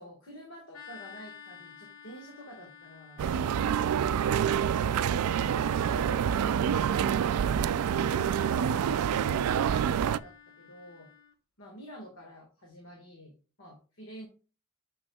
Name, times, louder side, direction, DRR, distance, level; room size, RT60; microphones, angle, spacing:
voice 1, 0.0-3.2 8.0-11.1 11.6-13.3 13.6-14.3, equal, 65° left, 1 dB, 1.6 m, -49 dB
sound 1, 0.7-11.3, left 7 dB, 85° left, 1.2 m, -52 dB
sound 2, 3.2-10.2, right 8 dB, 90° right, 0.3 m, -27 dB
7.0 x 6.2 x 2.3 m, 0.34 s
head